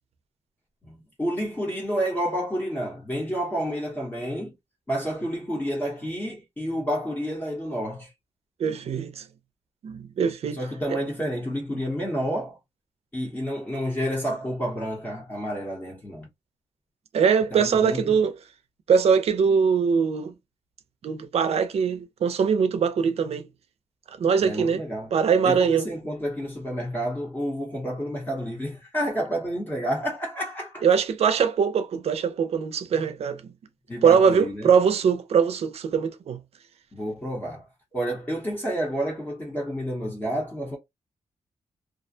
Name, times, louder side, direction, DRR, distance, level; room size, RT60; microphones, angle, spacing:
voice 1, 0.8-4.5 4.9-8.1 10.5-12.6 13.1-16.3 17.5-18.2 24.4-25.1 25.4-30.8 33.9-34.7 36.9-37.6 37.9-40.8, equal, 15° left, 0.8 m, -30 dB
voice 2, 8.6-9.2 9.8-10.6 10.9-11.0 17.1-18.3 18.9-20.3 21.0-23.5 24.2-24.8 25.1-25.9 30.8-33.4 34.0-36.4, right 6 dB, 60° right, 0.5 m, -22 dB
2.4 x 2.1 x 2.6 m
wide cardioid pair, 160°, 12 cm